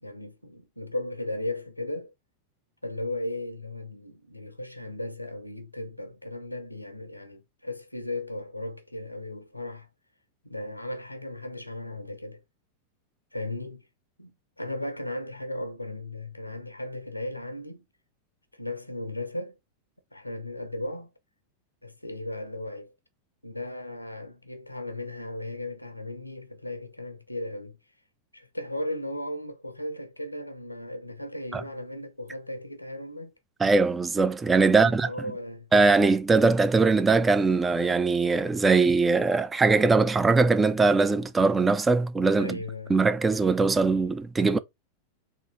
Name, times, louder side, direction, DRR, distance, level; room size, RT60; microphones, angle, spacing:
voice 1, 0.0-2.1 2.8-9.9 10.4-12.4 13.3-13.8 14.2-17.8 18.6-19.6 20.1-21.1 21.8-22.9 23.4-27.8 28.3-33.3 34.7-35.7 42.4-43.0, left 1 dB, 85° left, 0.7 m, -36 dB
voice 2, 33.6-35.1 35.7-42.6 42.9-44.6, right 4 dB, 15° right, 0.4 m, -21 dB
3.8 x 2.9 x 4.2 m
figure-of-eight pair, 90°, 0 cm